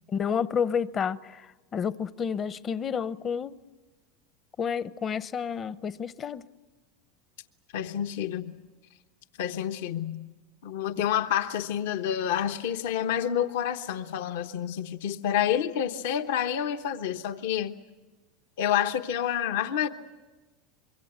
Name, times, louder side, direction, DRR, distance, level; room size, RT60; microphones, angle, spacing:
voice 1, 0.1-3.6 4.6-6.5 11.0-11.1, left 7 dB, 30° left, 0.7 m, -30 dB
voice 2, 7.7-8.6 9.4-10.3 10.6-17.8 18.6-19.9, left 10 dB, 75° left, 1.1 m, -28 dB
25.5 x 23.0 x 8.1 m
supercardioid pair, 110°, 0 cm